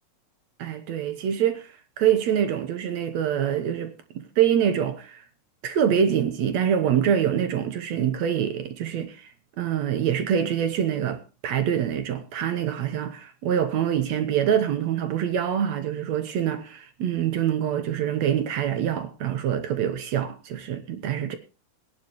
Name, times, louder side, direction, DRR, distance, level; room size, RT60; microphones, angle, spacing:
voice 1, 0.6-5.2 5.6-21.4, right 9 dB, 65° right, 1.9 m, -25 dB
20.0 x 10.5 x 3.1 m
omnidirectional pair, 4.0 m